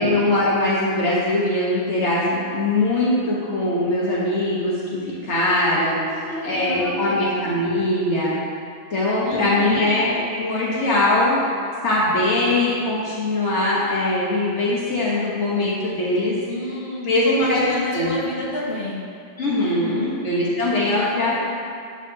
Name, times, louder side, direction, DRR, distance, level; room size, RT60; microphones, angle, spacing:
voice 1, 0.0-8.3 8.9-11.4 11.8-16.4 17.0-17.6 17.9-18.1 19.4-21.4, left 1 dB, 85° left, -6 dB, 1.6 m, -21 dB
voice 2, 5.7-7.3 9.2-9.9 16.5-19.0 19.4-20.1 20.8-21.4, left 1 dB, 60° left, -6 dB, 1.9 m, -30 dB
10.5 x 8.1 x 2.8 m, 2.3 s
omnidirectional pair, 1.2 m